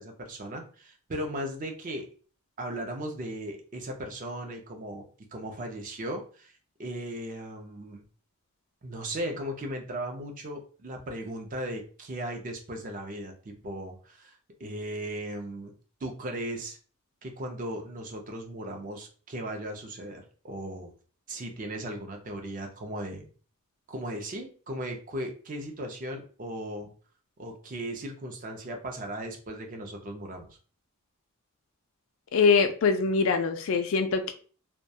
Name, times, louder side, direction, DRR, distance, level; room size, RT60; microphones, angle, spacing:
voice 1, 0.0-2.1 2.6-5.0 5.3-8.0 8.8-15.7 16.0-16.8 17.2-20.9 21.3-23.3 23.9-26.9 27.4-30.5, right 1 dB, 35° right, 3 dB, 0.4 m, -37 dB
voice 2, 32.3-34.3, left 5 dB, 60° left, 7 dB, 0.3 m, -23 dB
2.3 x 2.1 x 2.7 m, 0.40 s
head